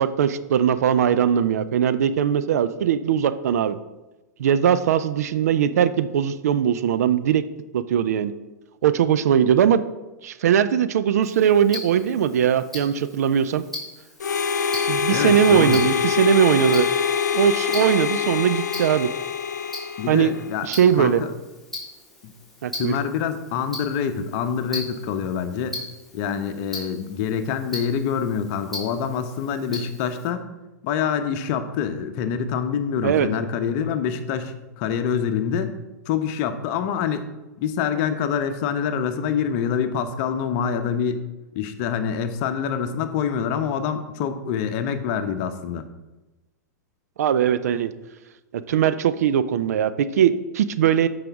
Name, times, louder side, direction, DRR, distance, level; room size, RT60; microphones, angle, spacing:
voice 1, 0.0-3.8 4.4-7.4 7.7-8.3 8.8-9.8 10.2-13.6 14.9-16.9 17.3-19.1 20.1-20.3 20.6-21.2 22.6-23.0 33.0-33.3 47.2-47.9 48.5-51.1, right 9 dB, 60° right, 13 dB, 0.5 m, -20 dB
Tick-tock, 11.2-30.3, left 1 dB, ahead, 2.6 m, -40 dB
Harmonica, 14.2-20.6, left 7 dB, 75° left, 0.4 m, -24 dB
voice 2, 15.1-15.8 20.0-20.7 21.0-21.3 22.2-22.3 22.8-25.8 26.1-30.5 30.8-35.8 36.1-37.2 37.6-41.2 41.5-45.8, left 7 dB, 40° left, 9 dB, 0.8 m, -26 dB
13.5 x 5.0 x 3.5 m, 1.1 s
figure-of-eight pair, 100°, 9 cm